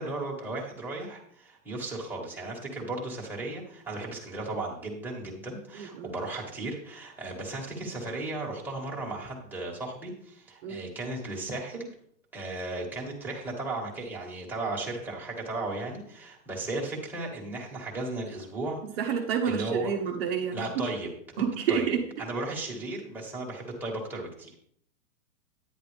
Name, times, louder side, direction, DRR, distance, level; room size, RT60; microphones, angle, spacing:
voice 1, 0.0-11.9 12.3-19.1 19.5-19.9 20.5-21.1 21.7-24.6, right 2 dB, 5° right, -4 dB, 1.8 m, -35 dB
voice 2, 5.7-6.1 10.6-10.8 18.8-20.8 21.4-22.0, right 7 dB, 45° right, 2 dB, 1.2 m, -29 dB
10.0 x 10.0 x 3.4 m, 0.65 s
supercardioid pair, 160°, 42 cm